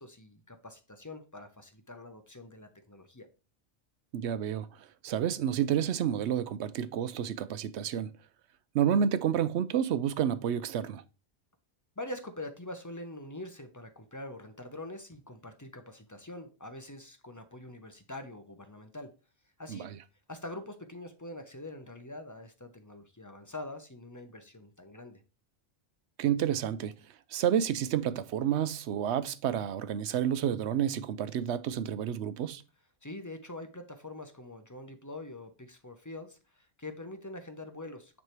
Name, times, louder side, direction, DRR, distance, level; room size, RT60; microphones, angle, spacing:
voice 1, 0.0-3.3 12.0-19.1 19.6-19.9 20.3-25.2 33.0-38.2, left 1 dB, 20° left, 0.6 m, -44 dB
voice 2, 4.1-4.7 5.0-8.2 8.7-11.0 19.7-19.9 26.2-27.0 27.3-32.6, right 9 dB, 70° right, 0.8 m, -30 dB
9.4 x 3.3 x 4.5 m
omnidirectional pair, 1.2 m